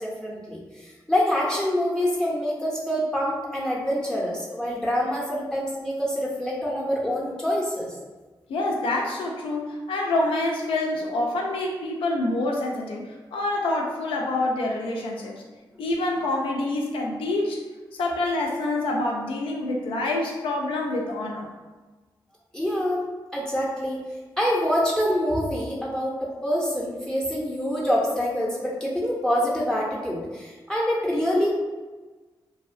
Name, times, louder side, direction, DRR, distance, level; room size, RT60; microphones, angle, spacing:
voice 1, 0.0-7.9 22.5-23.1 23.3-24.0 24.4-31.5, equal, 5° left, -4 dB, 0.5 m, -26 dB
voice 2, 8.5-15.3 15.8-17.6 17.9-21.5, left 2 dB, 90° left, -1 dB, 0.4 m, -27 dB
2.6 x 2.1 x 2.5 m, 1.3 s
cardioid pair, 65°, 9 cm